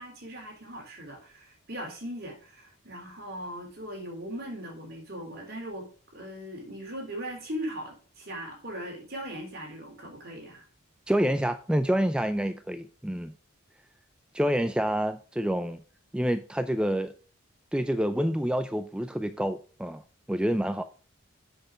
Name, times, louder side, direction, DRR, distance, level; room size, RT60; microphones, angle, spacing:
voice 1, 0.0-10.7, equal, 50° right, 3.6 m, -39 dB
voice 2, 11.1-13.3 14.3-15.8 16.1-17.1 17.7-20.0 20.3-20.8, equal, 5° right, 0.4 m, -27 dB
7.7 x 6.5 x 5.0 m
head